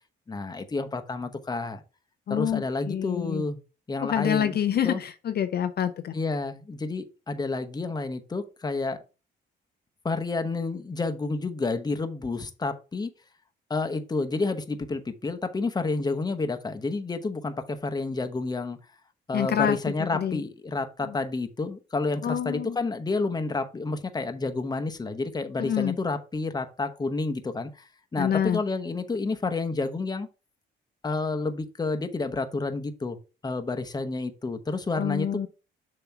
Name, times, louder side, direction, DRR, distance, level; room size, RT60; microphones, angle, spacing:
voice 1, 0.3-1.8 2.3-3.6 3.9-4.6 4.8-5.0 6.1-9.0 10.0-13.1 13.7-18.8 19.3-30.3 31.0-33.2 33.4-35.4, left 3 dB, 20° left, 7 dB, 0.9 m, -30 dB
voice 2, 2.3-3.4 4.0-6.1 19.3-19.8 20.1-20.4 22.2-22.8 25.6-26.0 28.2-28.6 35.0-35.5, left 9 dB, 55° left, 9 dB, 0.6 m, -27 dB
6.9 x 3.0 x 5.8 m, 0.32 s
cardioid pair, 90°, 20 cm